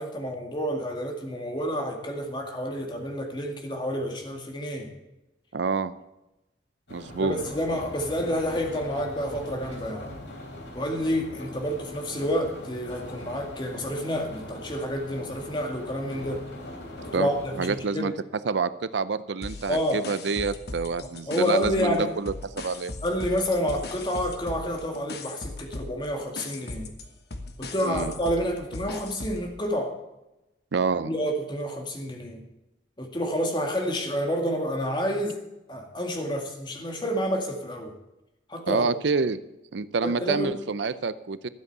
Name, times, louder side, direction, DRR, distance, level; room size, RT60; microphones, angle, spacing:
voice 1, 0.0-4.9 7.2-10.1 10.7-16.4 17.0-18.1 19.7-20.0 21.3-22.1 23.0-26.9 27.6-30.0 31.0-32.4 33.0-35.4 35.7-37.9 38.5-38.9 40.0-40.6, equal, 25° left, 2 dB, 1.9 m, -29 dB
voice 2, 5.5-5.9 6.9-7.4 17.1-17.3 17.6-18.1 18.4-22.9 27.8-28.1 30.7-31.1 38.7-39.4 39.7-41.5, right 4 dB, 75° right, 15 dB, 0.5 m, -27 dB
sound 1, 6.9-17.8, left 1 dB, 80° left, 3.3 m, -41 dB
sound 2, 19.4-22.0 22.3-29.5, left 2 dB, 60° left, 1.3 m, -39 dB
12.5 x 8.0 x 6.7 m, 0.97 s
head